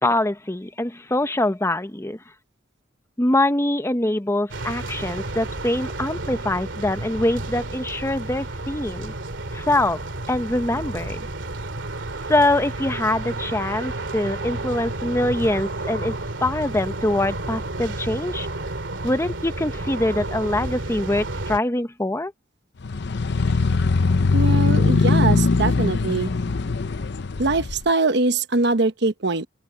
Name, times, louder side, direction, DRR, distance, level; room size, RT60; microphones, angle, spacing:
voice 1, 0.0-2.2 3.2-9.1 9.5-10.0 10.3-11.3 12.3-16.2 16.4-18.5 19.0-22.3, left 1 dB, 15° left, 1.0 m, -23 dB
sound 1, 4.5-21.6, right 2 dB, 90° right, 2.4 m, -31 dB
sound 2, 22.8-27.8, left 3 dB, 65° left, 0.7 m, -21 dB
voice 2, 24.3-26.3 27.4-29.5, right 3 dB, 65° right, 1.1 m, -22 dB
open air
head